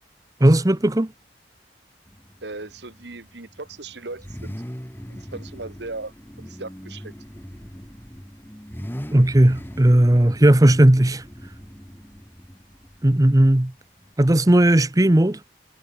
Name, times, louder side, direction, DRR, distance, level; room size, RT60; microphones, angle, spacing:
voice 1, 0.4-1.1 9.1-11.2 13.0-13.7 14.2-15.4, right 1 dB, 20° right, 0.8 m, -16 dB
Car / Idling / Accelerating revving vroom, 2.1-14.1, equal, 10° left, 3.1 m, -40 dB
voice 2, 2.4-4.6 5.1-7.1, right 3 dB, 70° right, 1.8 m, -37 dB
head